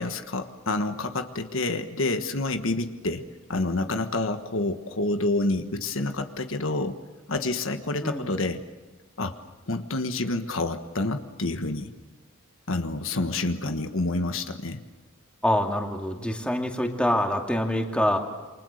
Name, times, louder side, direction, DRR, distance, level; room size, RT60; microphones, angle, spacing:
voice 1, 0.0-7.0 7.3-8.6 9.2-9.3 9.7-11.9 12.7-14.8, left 2 dB, 70° left, 7 dB, 1.4 m, -28 dB
voice 2, 8.0-8.3 15.4-18.2, left 1 dB, 5° left, 2 dB, 2.3 m, -25 dB
28.5 x 24.5 x 6.6 m, 1.3 s
head